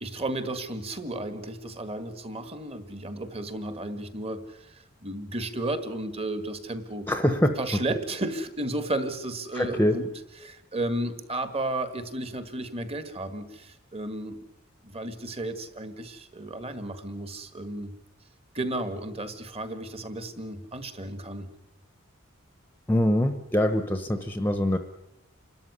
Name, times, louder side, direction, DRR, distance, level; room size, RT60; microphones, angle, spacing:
voice 1, 0.0-7.1 7.6-10.1 10.4-14.4 14.8-17.9 18.5-21.5, right 1 dB, 30° right, 10 dB, 1.7 m, -33 dB
voice 2, 7.1-7.6 9.5-10.0 22.9-24.8, equal, 10° left, 8 dB, 1.0 m, -24 dB
28.0 x 13.0 x 9.7 m, 0.93 s
head